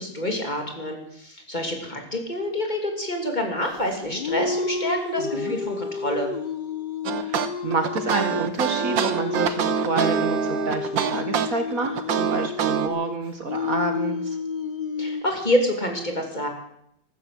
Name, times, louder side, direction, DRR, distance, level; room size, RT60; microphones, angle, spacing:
voice 1, 0.0-6.3 15.0-16.5, left 1 dB, 25° left, 2 dB, 3.0 m, -27 dB
sound 1, 3.8-15.2, left 5 dB, 85° left, 0.4 m, -30 dB
voice 2, 5.2-5.5 7.2-14.4, right 3 dB, 50° right, 6 dB, 1.9 m, -28 dB
sound 2, 7.1-12.9, right 8 dB, 80° right, 1.8 m, -25 dB
14.5 x 13.0 x 7.7 m, 0.74 s
omnidirectional pair, 2.1 m